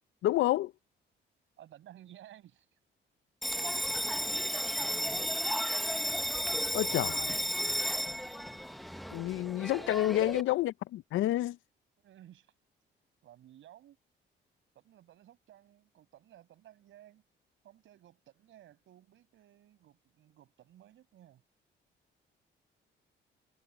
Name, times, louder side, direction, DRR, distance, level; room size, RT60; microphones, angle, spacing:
voice 1, 0.2-0.7 6.7-7.4 9.1-11.6, left 15 dB, 80° left, 0.6 m, -29 dB
voice 2, 1.6-2.7 3.5-4.0 4.7-5.5 9.7-10.1 12.0-12.5 13.2-14.0 14.7-17.2 17.6-21.4, right 12 dB, 75° right, 5.9 m, -55 dB
Bell, 3.4-10.4, equal, ahead, 0.8 m, -33 dB
cardioid pair, 90°, 20 cm